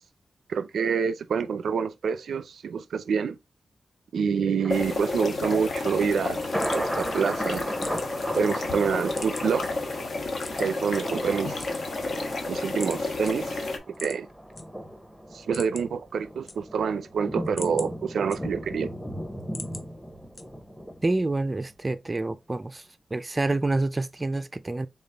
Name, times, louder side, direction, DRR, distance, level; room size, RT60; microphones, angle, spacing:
voice 1, 0.5-3.4 4.1-6.4 6.7-7.7 8.4-9.6 10.6-11.7 12.5-14.3 15.3-18.9, right 6 dB, 90° right, 0.4 m, -27 dB
Thunder, 4.6-21.7 22.1-22.2, equal, ahead, 0.8 m, -37 dB
sound 1, 4.7-13.8, left 3 dB, 60° left, 1.0 m, -31 dB
sound 2, 6.6-8.4 8.8-9.7 10.4-11.0 11.5-12.4 12.8-13.0 13.2-13.3 13.9-14.6 15.0-15.1 15.4-16.0 16.3-17.0 17.3-18.8 19.2-19.8 20.3-20.8, left 3 dB, 40° left, 0.8 m, -41 dB
voice 2, 21.0-22.9 23.1-24.9, right 2 dB, 20° right, 0.4 m, -27 dB
4.1 x 3.5 x 3.4 m
wide cardioid pair, 145°, 0 cm